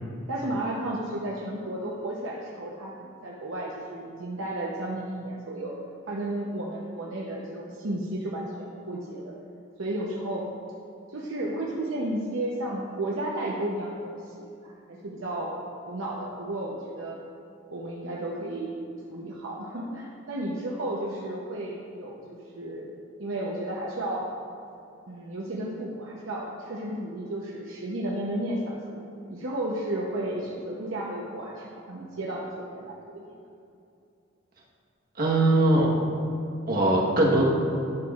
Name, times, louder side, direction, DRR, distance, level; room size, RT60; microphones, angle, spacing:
voice 1, 0.3-5.7 6.1-9.3 9.8-10.5 11.1-15.6 15.9-17.2 17.7-18.7 19.1-22.9 23.2-24.2 25.1-29.0 29.3-33.2, right 1 dB, 85° right, -3 dB, 0.7 m, -33 dB
voice 2, 35.2-35.9 36.7-37.4, right 1 dB, 45° right, -4 dB, 1.2 m, -21 dB
11.5 x 6.1 x 2.4 m, 2.6 s
head